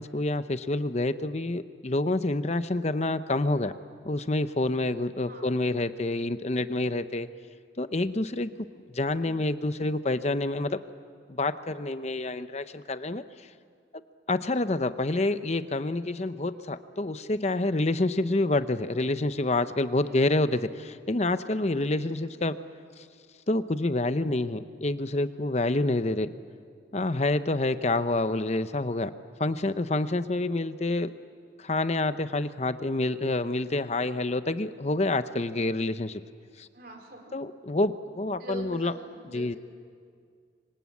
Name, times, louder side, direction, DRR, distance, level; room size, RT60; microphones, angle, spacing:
voice 1, 0.0-3.7 4.0-7.3 7.8-8.7 8.9-10.8 11.3-13.2 13.9-14.0 14.3-22.6 23.5-26.3 26.9-29.1 29.4-31.1 31.6-36.2 36.6-36.7 37.3-38.9 39.3-39.6, left 2 dB, 35° left, 11 dB, 0.8 m, -28 dB
voice 2, 5.2-5.5 20.0-20.4 21.9-22.1 36.7-37.5 38.4-39.6, equal, 50° right, 2 dB, 4.5 m, -44 dB
26.0 x 25.0 x 8.5 m, 2.1 s
head